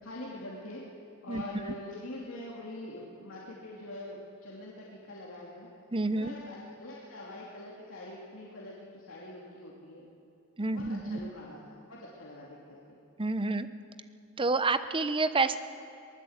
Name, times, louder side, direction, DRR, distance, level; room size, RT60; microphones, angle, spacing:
voice 1, 0.0-0.8 1.2-5.7 6.1-10.0 10.7-13.0, left 1 dB, 70° left, -5 dB, 2.8 m, -44 dB
voice 2, 1.3-1.8 5.9-6.3 10.6-11.3 13.2-13.7 14.4-15.6, right 3 dB, 25° right, 12 dB, 0.8 m, -29 dB
23.5 x 19.0 x 8.1 m, 2.6 s
head